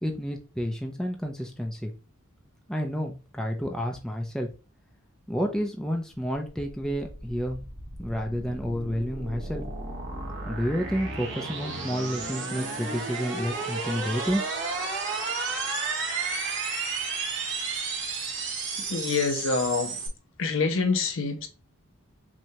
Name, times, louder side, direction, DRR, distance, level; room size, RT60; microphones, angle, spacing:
voice 1, 0.0-1.9 2.7-4.5 5.3-7.6 8.0-9.6 10.5-14.4, equal, 5° left, 0.4 m, -30 dB
sound 1, 6.9-20.1, right 4 dB, 55° right, 1.0 m, -33 dB
voice 2, 18.9-20.0 20.4-21.5, left 4 dB, 60° left, 0.7 m, -26 dB
5.9 x 2.3 x 2.8 m
head